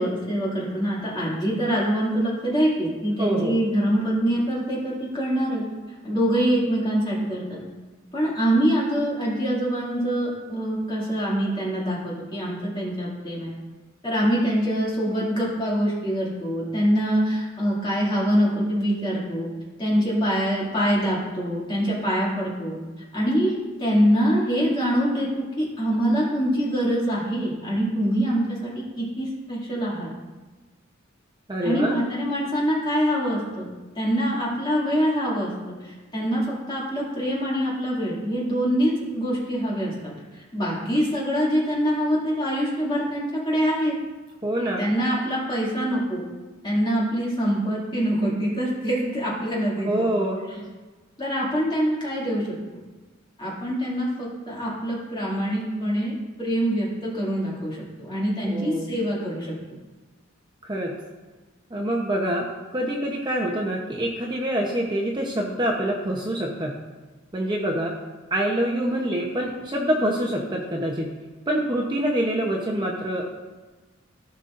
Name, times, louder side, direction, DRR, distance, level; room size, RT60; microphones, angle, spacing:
voice 1, 0.0-5.6 6.0-7.6 8.1-13.5 14.0-19.5 19.8-22.8 23.1-30.1 31.6-33.7 33.9-44.0 44.8-46.2 46.6-50.1 51.2-52.6 53.4-59.5, equal, 25° left, -6 dB, 2.3 m, -24 dB
voice 2, 3.2-3.5 31.5-32.0 44.4-44.8 49.8-50.4 58.4-58.9 60.6-60.9 61.7-62.4 62.7-66.7 67.3-68.0 68.3-71.1 71.5-73.2, right 1 dB, 20° right, -1 dB, 0.8 m, -25 dB
16.0 x 5.5 x 2.6 m, 1.2 s
head